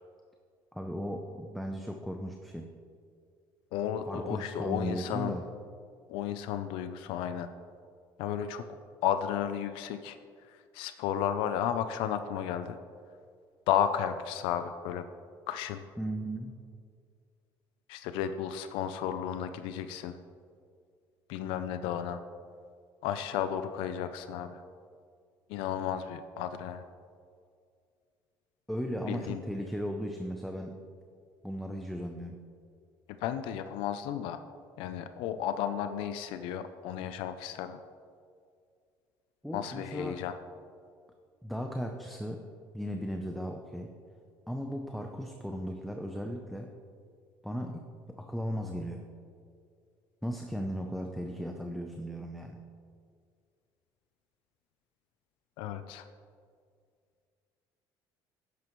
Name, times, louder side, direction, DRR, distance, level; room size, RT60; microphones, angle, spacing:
voice 1, 0.7-2.7 4.1-5.4 16.0-16.5 28.7-30.7 31.4-32.4 39.4-40.2 41.4-42.5 42.7-43.9 44.5-46.8 47.4-47.9 48.2-49.1 50.2-52.6, equal, ahead, 3 dB, 0.6 m, -36 dB
voice 2, 3.7-5.4 6.1-7.5 8.2-8.6 9.0-10.2 10.5-12.8 13.7-15.0 15.5-15.8 17.9-20.2 21.3-22.2 23.0-24.6 25.5-26.8 29.1-29.4 33.1-34.4 34.8-37.8 39.5-40.4 55.6-56.1, left 9 dB, 85° left, 9 dB, 0.5 m, -33 dB
12.0 x 9.4 x 3.1 m, 2.2 s
cardioid pair, 125°, 9 cm